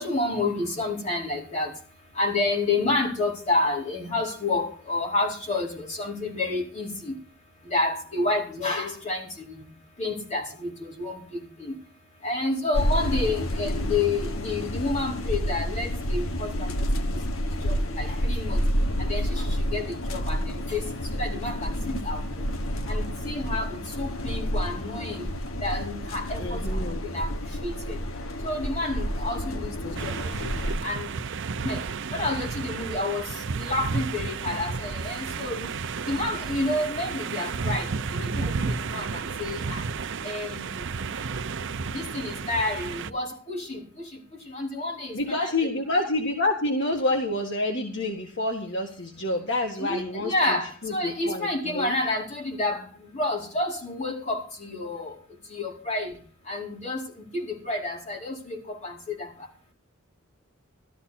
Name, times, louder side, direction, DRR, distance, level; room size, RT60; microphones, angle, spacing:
voice 1, 0.0-1.7 2.1-7.1 7.7-9.6 10.0-11.7 12.2-17.2 17.6-18.6 19.0-20.8 21.2-21.7 22.0-22.5 22.9-25.3 25.6-26.6 27.0-27.3 27.6-28.0 28.4-30.1 30.4-31.1 31.6-31.8 32.1-33.2 33.5-35.7 36.1-39.8 40.2-40.8 41.9-44.1 44.4-45.5 49.8-52.9 53.1-55.2 55.5-56.1 56.5-57.0 57.3-59.3, left 2 dB, 35° left, -2 dB, 4.6 m, -29 dB
sound 1, 12.7-30.8, equal, 85° left, 1.3 m, -29 dB
voice 2, 26.4-27.0 29.5-30.0 45.1-52.0, left 2 dB, 60° left, 2 dB, 1.7 m, -28 dB
sound 2, 30.0-43.1, right 4 dB, 65° right, 0.7 m, -32 dB
14.0 x 13.0 x 4.3 m, 0.40 s
head